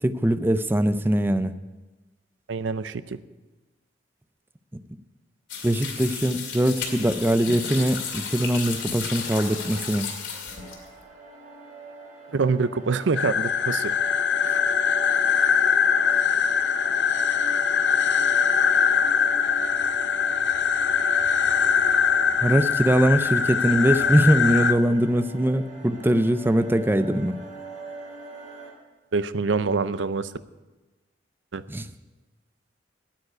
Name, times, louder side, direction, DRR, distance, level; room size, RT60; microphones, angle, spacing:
voice 1, 0.0-1.6 5.6-10.1 22.4-27.4 31.7-31.9, right 1 dB, 10° right, 12 dB, 0.5 m, -22 dB
voice 2, 2.5-3.2 12.3-13.9 29.1-30.3 31.5-31.6, right 4 dB, 85° right, 15 dB, 0.5 m, -25 dB
sound 1, 5.5-11.0, left 6 dB, 90° left, 2.4 m, -34 dB
sound 2, 10.5-28.7, right 3 dB, 45° right, 3.9 m, -42 dB
sound 3, 13.2-24.7, left 7 dB, 75° left, 0.7 m, -22 dB
9.5 x 9.1 x 9.4 m, 1.2 s
head